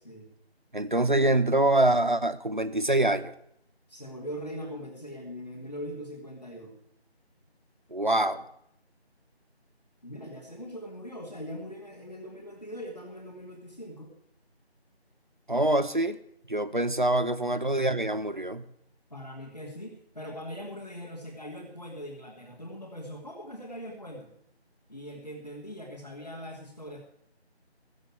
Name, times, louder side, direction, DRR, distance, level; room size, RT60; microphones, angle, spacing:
voice 1, 0.7-3.3 7.9-8.4 15.5-16.2 16.5-18.7, right 1 dB, 45° right, 10 dB, 0.9 m, -25 dB
voice 2, 3.9-6.7 10.0-14.1 19.1-24.3 24.9-27.0, equal, 40° left, -4 dB, 2.4 m, -41 dB
14.5 x 7.5 x 8.1 m, 0.74 s
figure-of-eight pair, 175°, 33 cm